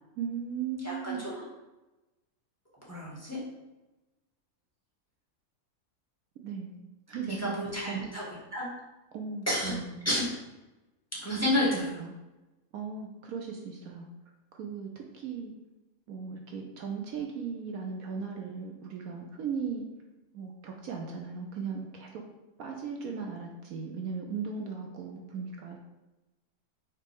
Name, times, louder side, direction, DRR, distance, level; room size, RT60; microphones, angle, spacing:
voice 1, 0.2-1.3 6.4-6.7 7.1-8.0 9.1-10.1 11.7-12.1 12.7-14.1 14.5-15.5 16.1-19.8 20.3-22.2 22.6-25.8, right 6 dB, 70° right, 1 dB, 1.1 m, -37 dB
voice 2, 0.8-1.4 2.9-3.4 7.3-8.2 8.5-8.7 9.5-9.7 10.1-10.2 11.2-11.9, left 1 dB, 10° left, -8 dB, 1.9 m, -30 dB
4.5 x 4.5 x 5.2 m, 1.0 s
omnidirectional pair, 1.6 m